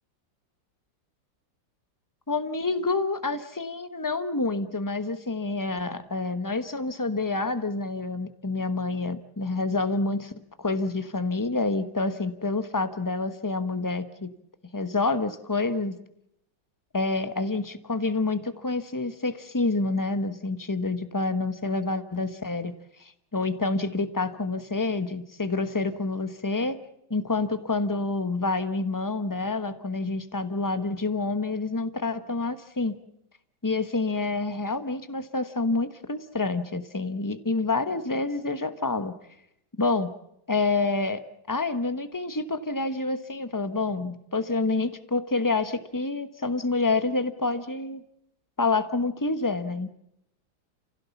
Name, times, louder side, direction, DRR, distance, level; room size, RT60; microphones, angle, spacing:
voice 1, 2.3-10.3 10.6-14.3 14.7-16.0 16.9-22.7 23.0-26.8 27.1-33.0 33.6-39.1 39.8-40.1 40.5-41.2 41.5-48.0 48.6-49.9, left 3 dB, 15° left, 11 dB, 0.7 m, -28 dB
29.0 x 16.0 x 7.1 m, 0.77 s
omnidirectional pair, 2.1 m